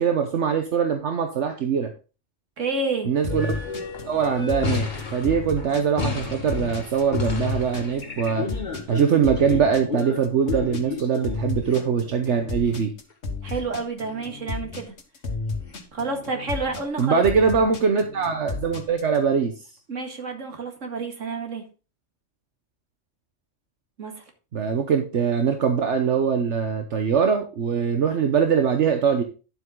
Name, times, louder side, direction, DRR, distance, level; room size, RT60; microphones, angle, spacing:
voice 1, 0.0-1.9 3.0-3.6 4.1-8.5 8.9-12.9 17.0-19.5 24.5-29.2, right 6 dB, 70° right, 5 dB, 1.3 m, -22 dB
voice 2, 2.6-3.1 13.4-14.9 15.9-17.2 19.9-21.6 24.0-24.2, right 3 dB, 85° right, 4 dB, 2.3 m, -29 dB
sound 1, 3.2-19.2, left 3 dB, 65° left, 1.8 m, -33 dB
sound 2, 3.3-11.8 12.7-12.8 13.1-13.2 13.5-13.6 14.1-14.2 15.7-15.8, left 4 dB, 40° left, 1.7 m, -32 dB
11.0 x 7.7 x 3.8 m, 0.33 s
omnidirectional pair, 1.3 m